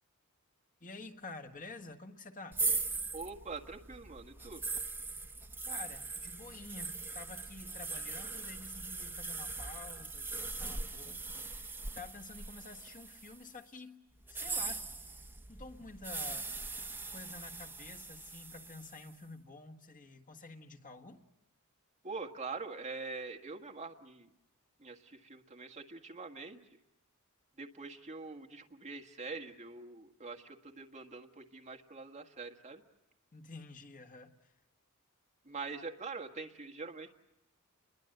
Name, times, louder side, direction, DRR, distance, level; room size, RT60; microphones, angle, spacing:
voice 1, 0.8-2.6 5.6-14.0 14.3-14.9 15.5-21.2 33.3-34.4, left 3 dB, 40° left, 5 dB, 1.6 m, -50 dB
sound 1, 2.5-13.5 14.2-19.1, right 3 dB, 10° right, 0.9 m, -40 dB
voice 2, 3.1-4.6 22.0-24.3 24.8-26.6 27.6-32.8 35.4-37.1, right 4 dB, 35° right, 4 dB, 1.7 m, -44 dB
29.0 x 22.0 x 7.9 m, 0.91 s
head